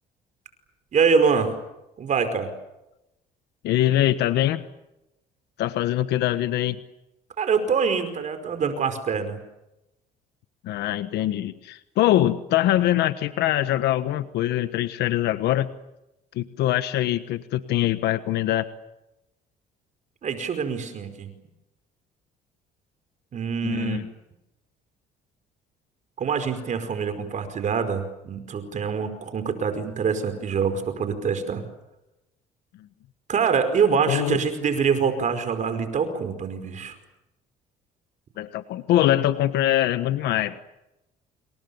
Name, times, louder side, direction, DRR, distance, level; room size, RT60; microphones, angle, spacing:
voice 1, 0.9-1.6 2.0-2.5 7.4-9.4 20.2-21.3 23.3-24.0 26.2-31.6 33.3-36.9, right 6 dB, 45° right, 9 dB, 5.0 m, -25 dB
voice 2, 3.6-4.6 5.6-6.8 10.6-15.7 16.3-18.7 23.6-24.1 34.1-34.4 38.4-40.6, left 13 dB, 80° left, 11 dB, 1.3 m, -23 dB
28.5 x 28.0 x 7.1 m, 0.92 s
cardioid pair, 110°, 17 cm